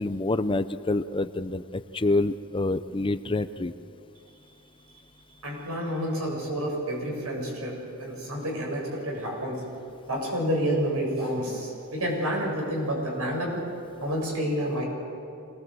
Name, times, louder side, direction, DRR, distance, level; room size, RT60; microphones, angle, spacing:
voice 1, 0.0-3.7, left 2 dB, 25° left, 12 dB, 0.5 m, -27 dB
voice 2, 5.4-9.6 10.1-13.7 14.0-14.8, equal, 80° right, -1 dB, 7.5 m, -29 dB
26.5 x 20.0 x 7.9 m, 2.7 s
head